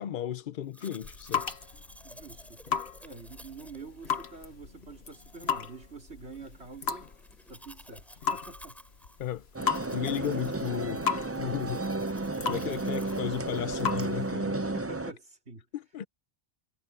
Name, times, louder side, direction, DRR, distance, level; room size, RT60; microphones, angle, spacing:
voice 1, 0.0-1.5 9.2-9.4 9.9-11.0 11.4-11.9 12.4-14.6 15.7-16.0, left 10 dB, 55° left, 0.8 m, -34 dB
Domestic sounds home sounds, 0.7-14.1, equal, ahead, 6.9 m, -53 dB
sound 1, 0.8-14.3, left 7 dB, 75° left, 1.6 m, -36 dB
voice 2, 2.0-2.6 3.0-7.1 7.5-8.8 12.6-12.8 14.6-15.7, right 3 dB, 85° right, 3.8 m, -47 dB
sound 2, 9.5-15.1, right 2 dB, 20° right, 0.5 m, -33 dB
omnidirectional pair, 1.1 m